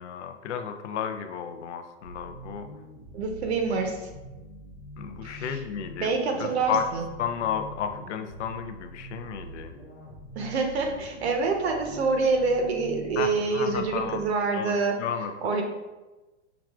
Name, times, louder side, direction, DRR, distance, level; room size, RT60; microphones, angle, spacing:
voice 1, 0.0-2.7 5.0-6.1 6.4-6.9 7.2-9.7 13.2-14.2 14.5-15.6, left 8 dB, 75° left, 7 dB, 0.5 m, -33 dB
sound 1, 2.0-14.3, right 1 dB, 15° left, 0.4 m, -44 dB
voice 2, 3.1-4.1 5.2-5.6 6.0-7.1 10.3-15.0 15.4-15.6, right 4 dB, 65° right, 3 dB, 0.8 m, -26 dB
5.8 x 2.4 x 2.3 m, 1.1 s
supercardioid pair, 160°, 35 cm